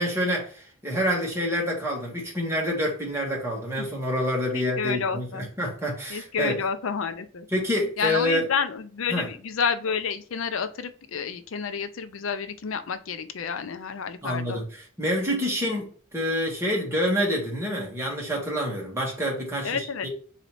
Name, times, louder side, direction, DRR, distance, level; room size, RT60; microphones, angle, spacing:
voice 1, 0.0-5.3 5.6-6.6 7.5-8.5 9.1-9.3 14.2-20.1, equal, 15° right, 1.5 m, -27 dB
voice 2, 4.5-5.5 6.1-7.5 8.0-14.6 19.6-20.1, left 6 dB, 80° left, 0.5 m, -29 dB
4.0 x 2.8 x 4.6 m
head